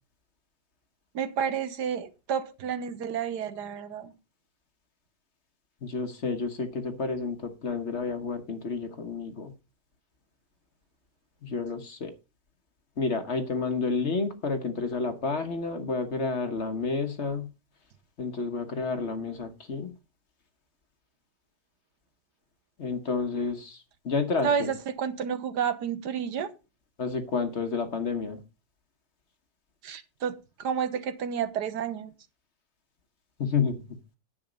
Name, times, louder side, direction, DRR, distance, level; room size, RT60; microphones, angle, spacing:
voice 1, 1.1-4.1 24.4-26.5 29.8-32.1, right 7 dB, 85° right, 1.6 m, -30 dB
voice 2, 5.8-9.5 11.4-12.1 13.0-17.5 18.2-19.9 22.8-23.8 24.0-24.7 27.0-28.4 33.4-33.8, left 4 dB, 45° left, 1.4 m, -30 dB
10.0 x 7.3 x 5.2 m
omnidirectional pair, 1.7 m